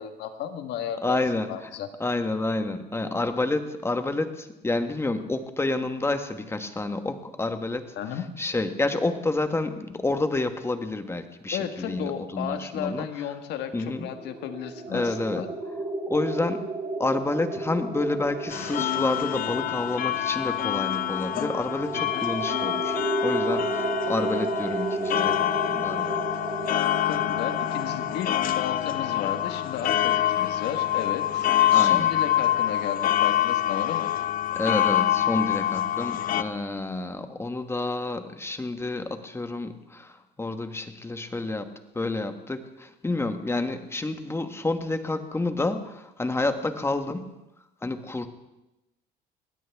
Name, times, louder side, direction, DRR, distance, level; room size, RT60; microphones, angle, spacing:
voice 1, 0.0-1.2 1.5-1.9 8.0-8.3 11.5-15.5 21.9-22.3 27.1-34.1, left 9 dB, 85° left, 8 dB, 1.5 m, -34 dB
voice 2, 1.0-1.7 2.0-13.1 13.7-14.1 14.9-15.4 16.1-16.7 17.0-26.3 31.7-32.1 34.5-47.3 47.8-48.3, left 2 dB, 15° left, 8 dB, 1.3 m, -29 dB
sound 1, 13.7-30.5, right 2 dB, 30° right, 2.4 m, -33 dB
sound 2, 18.5-36.4, left 12 dB, 55° left, 0.7 m, -26 dB
21.5 x 16.5 x 3.5 m, 0.95 s
cardioid pair, 110°, 17 cm